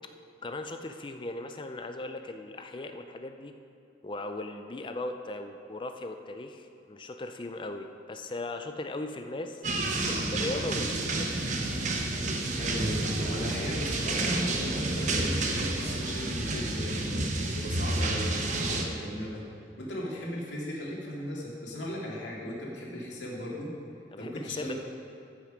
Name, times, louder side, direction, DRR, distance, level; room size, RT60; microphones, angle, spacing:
voice 1, 0.4-3.5 4.0-9.7 10.1-11.5 24.1-24.7, left 2 dB, 25° left, 6 dB, 0.5 m, -38 dB
sound 1, 9.6-18.9, right 2 dB, 40° right, 1.0 m, -30 dB
voice 2, 12.6-17.1 17.5-19.5 19.8-23.7 24.2-24.7, equal, 90° left, -4 dB, 2.3 m, -37 dB
14.0 x 6.2 x 5.0 m, 2.6 s
head